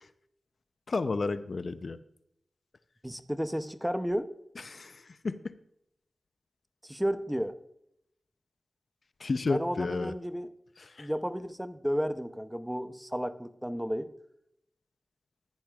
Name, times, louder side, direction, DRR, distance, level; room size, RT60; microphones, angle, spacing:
voice 1, 0.9-2.0 4.7-5.5 9.2-10.1 10.8-11.1, left 3 dB, 55° left, 12 dB, 0.6 m, -32 dB
voice 2, 3.0-4.3 6.8-7.6 9.5-10.5 11.0-14.1, equal, 5° right, 10 dB, 0.6 m, -32 dB
15.0 x 10.5 x 2.4 m, 0.78 s
wide cardioid pair, 75°, 0 cm